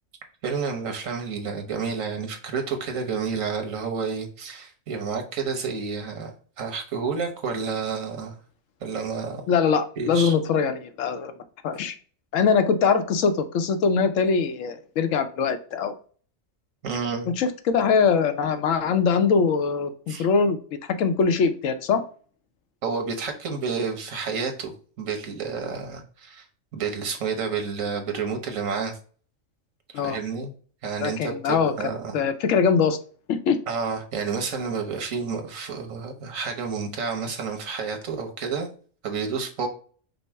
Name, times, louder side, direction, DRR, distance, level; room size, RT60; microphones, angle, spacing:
voice 1, 0.4-8.4 8.8-9.4 10.0-10.4 16.8-17.3 20.1-20.3 22.8-24.7 25.0-26.5 26.7-29.0 29.9-30.5 30.8-32.1 33.7-38.7 39.0-39.7, right 5 dB, 80° right, 4 dB, 1.4 m, -30 dB
voice 2, 9.5-11.3 11.6-11.9 12.3-15.9 17.4-20.6 21.0-22.0 29.9-30.2 31.0-31.7 32.1-33.0 33.3-33.6, left 5 dB, 75° left, 9 dB, 1.0 m, -22 dB
5.2 x 2.1 x 4.5 m, 0.41 s
omnidirectional pair, 1.4 m